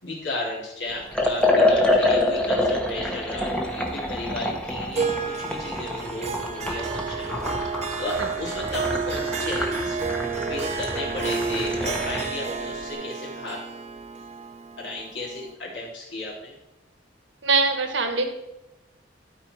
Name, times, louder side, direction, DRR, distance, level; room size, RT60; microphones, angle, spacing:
voice 1, 0.0-7.6 8.0-10.0 10.5-13.6 14.8-16.5, left 2 dB, 70° left, -5 dB, 3.2 m, -34 dB
Liquid, 1.1-12.3, left 1 dB, 5° left, 1.0 m, -26 dB
Harp, 4.9-15.5, right 5 dB, 35° right, 0.7 m, -31 dB
voice 2, 17.4-18.2, right 3 dB, 75° right, 5 dB, 1.3 m, -22 dB
12.5 x 4.4 x 4.5 m, 0.95 s
head